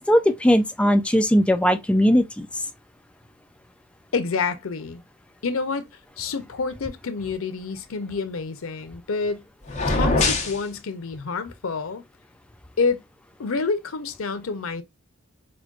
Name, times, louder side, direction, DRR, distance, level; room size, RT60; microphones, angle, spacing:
voice 1, 0.1-2.5, equal, 5° left, 0.3 m, -19 dB
voice 2, 4.1-5.0 5.4-5.9 6.2-9.5 9.9-12.0 12.8-13.0 13.4-14.8, left 4 dB, 85° left, 0.6 m, -28 dB
sound 1, 9.7-10.6, left 3 dB, 35° left, 0.9 m, -22 dB
4.9 x 2.2 x 2.3 m
head